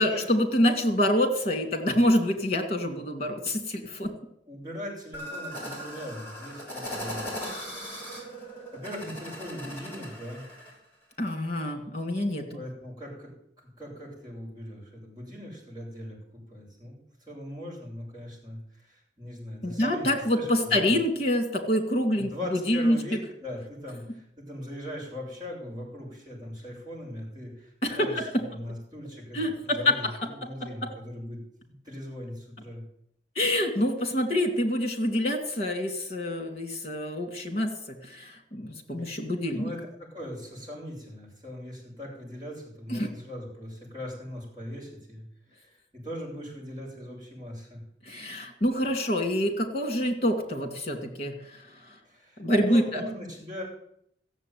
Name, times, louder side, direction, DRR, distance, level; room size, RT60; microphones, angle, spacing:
voice 1, 0.0-4.1 11.2-12.6 19.6-23.0 27.8-28.3 29.3-29.9 33.3-39.7 42.9-43.1 48.0-52.0 52.4-53.0, left 1 dB, 35° left, 5 dB, 2.8 m, -26 dB
voice 2, 4.5-8.2 8.7-10.5 12.5-13.3 13.8-17.0 17.3-20.1 20.3-21.0 22.1-32.8 39.0-39.1 39.5-45.2 45.5-47.8 52.0-53.6, equal, 25° right, -5 dB, 7.5 m, -40 dB
sound 1, 5.1-10.7, equal, 10° left, 5.6 m, -38 dB
14.5 x 7.7 x 9.5 m, 0.70 s
head